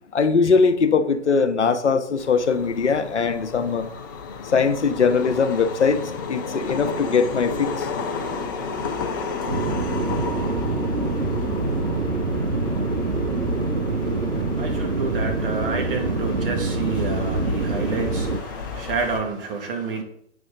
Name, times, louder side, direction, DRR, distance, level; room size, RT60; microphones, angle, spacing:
voice 1, 0.1-3.9 4.4-6.0 6.3-7.9, left 5 dB, 70° left, 0.9 m, -21 dB
sound 1, 2.2-19.2, left 6 dB, 20° left, 0.4 m, -33 dB
sound 2, 6.5-14.5, right 2 dB, 20° right, 1.4 m, -35 dB
sound 3, 9.5-18.4, right 3 dB, 90° right, 1.0 m, -25 dB
voice 2, 13.9-20.0, right 4 dB, 50° right, 2.2 m, -29 dB
8.7 x 5.9 x 3.9 m
figure-of-eight pair, 120°, 36 cm